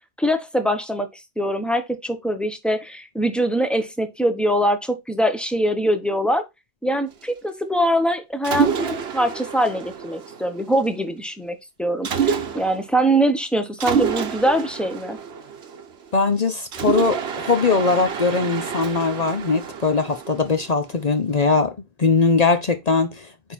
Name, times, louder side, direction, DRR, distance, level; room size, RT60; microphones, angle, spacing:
voice 1, 0.2-6.4 6.8-15.2, right 1 dB, ahead, 1.0 m, -23 dB
Mechanisms, 8.4-10.9 12.0-12.9 13.8-16.1 16.7-20.9, right 7 dB, 80° right, 1.2 m, -27 dB
voice 2, 16.1-21.7 22.0-23.3, left 4 dB, 45° left, 0.7 m, -20 dB
8.9 x 3.7 x 4.2 m
omnidirectional pair, 1.1 m